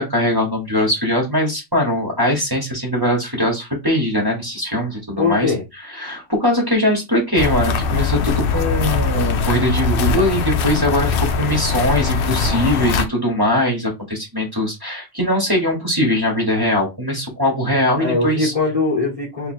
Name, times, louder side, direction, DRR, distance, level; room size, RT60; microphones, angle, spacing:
voice 1, 0.0-5.5 5.9-18.5, left 1 dB, 20° right, 1.3 m, -20 dB
voice 2, 5.2-5.6 18.0-19.5, left 3 dB, 30° left, 1.0 m, -21 dB
sound 1, 7.4-13.1, left 5 dB, 65° left, 0.6 m, -21 dB
2.8 x 2.7 x 4.3 m
omnidirectional pair, 1.4 m